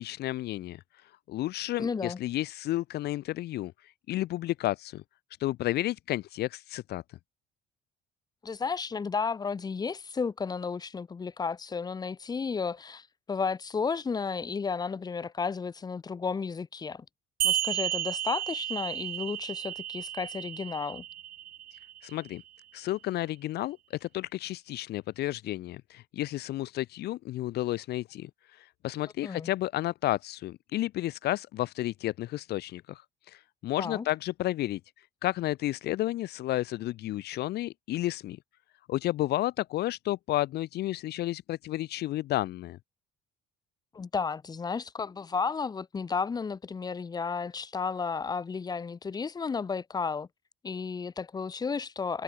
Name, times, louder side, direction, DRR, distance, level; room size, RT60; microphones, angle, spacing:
voice 1, 0.0-5.0 5.4-7.0 22.0-22.4 22.7-33.0 33.3-34.8 35.2-38.4 38.9-42.8, left 15 dB, 55° left, 2.0 m, -32 dB
voice 2, 1.8-2.2 8.4-17.0 17.4-21.0 29.2-29.5 33.8-34.1 43.9-50.3 50.6-52.2, left 5 dB, 20° left, 4.3 m, -33 dB
sound 1, 17.4-22.4, right 12 dB, 50° right, 3.2 m, -33 dB
cardioid pair, 170°, 19 cm